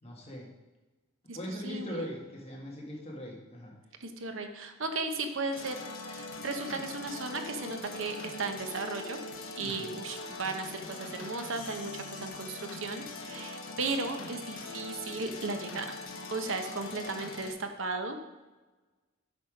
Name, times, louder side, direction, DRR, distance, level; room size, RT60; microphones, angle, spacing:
voice 1, 0.0-0.5 1.3-3.7 9.6-10.0, equal, 30° left, -2 dB, 1.8 m, -40 dB
voice 2, 1.6-2.1 4.0-5.8 6.1-9.2 9.6-16.0 16.3-18.2, right 3 dB, 70° right, 6 dB, 0.9 m, -35 dB
sound 1, 5.5-17.5, left 3 dB, 80° left, 1.0 m, -42 dB
8.1 x 5.6 x 5.1 m, 1.2 s
head